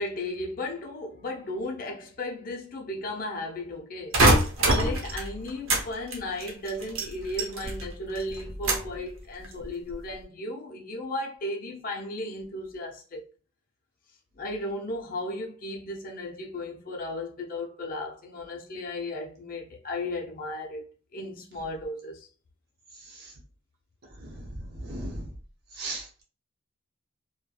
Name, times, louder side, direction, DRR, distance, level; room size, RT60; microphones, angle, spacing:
voice 1, 0.0-4.2 4.6-13.2 14.3-20.9 21.1-22.3, left 1 dB, 45° left, 0.6 m, -35 dB
sound 1, 4.1-5.9 6.1-7.9 8.2-9.0 9.4-9.9, right 1 dB, 80° right, 0.8 m, -24 dB
voice 2, 24.2-25.3 25.8-26.1, right 1 dB, 50° right, 0.9 m, -36 dB
3.2 x 2.2 x 2.2 m
head